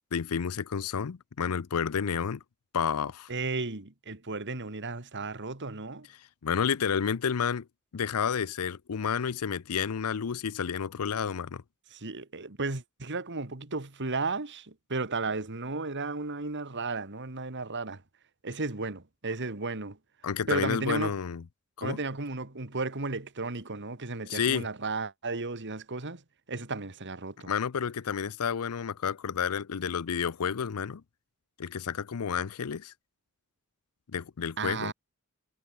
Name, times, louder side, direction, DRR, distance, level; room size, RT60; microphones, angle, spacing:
voice 1, 0.1-2.4 2.7-3.3 6.4-7.6 7.9-11.6 20.2-21.4 21.8-22.0 24.3-24.7 27.5-31.0 31.6-32.9 34.1-34.9, left 7 dB, 80° left, 0.5 m, -30 dB
voice 2, 3.3-6.1 11.9-18.0 18.4-20.0 20.5-21.1 21.8-26.2 26.5-27.5 34.6-34.9, right 3 dB, 55° right, 2.2 m, -34 dB
head